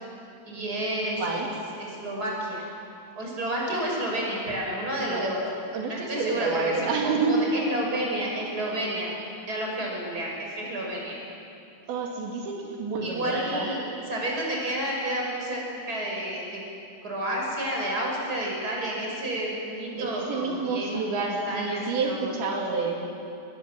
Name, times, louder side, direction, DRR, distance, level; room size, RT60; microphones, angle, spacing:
voice 1, 0.5-1.5 1.8-2.7 3.1-5.4 5.9-9.1 9.5-11.2 13.0-16.6 17.0-22.3, right 1 dB, 20° right, -2 dB, 6.1 m, -30 dB
voice 2, 5.7-7.4 11.9-13.7 20.0-23.1, right 4 dB, 80° right, -1 dB, 4.7 m, -29 dB
26.5 x 21.0 x 7.6 m, 2.7 s
omnidirectional pair, 5.1 m